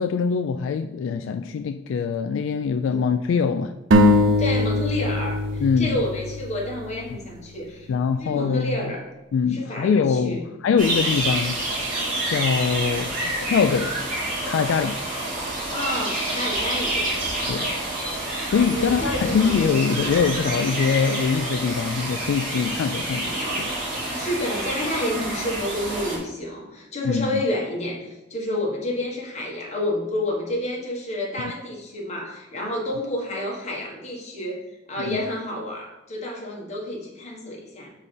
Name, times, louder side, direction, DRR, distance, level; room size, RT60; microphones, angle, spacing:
voice 1, 0.0-3.7 5.6-6.0 7.9-8.9 9.3-11.6 12.3-14.0 14.5-15.0 17.5-17.7 18.5-23.7 27.0-27.3 31.4-31.5 35.0-35.2, left 6 dB, 85° left, 9 dB, 0.3 m, -23 dB
sound 1, 3.9-7.5, left 1 dB, 85° right, 0.7 m, -21 dB
voice 2, 4.4-7.9 8.2-9.1 9.5-10.4 15.7-17.0 18.7-19.7 24.1-34.6 34.9-37.9, left 1 dB, 35° left, -2 dB, 1.6 m, -29 dB
sound 2, 10.8-26.2, right 1 dB, 45° right, 2.0 m, -28 dB
4.9 x 4.2 x 5.3 m, 0.99 s
head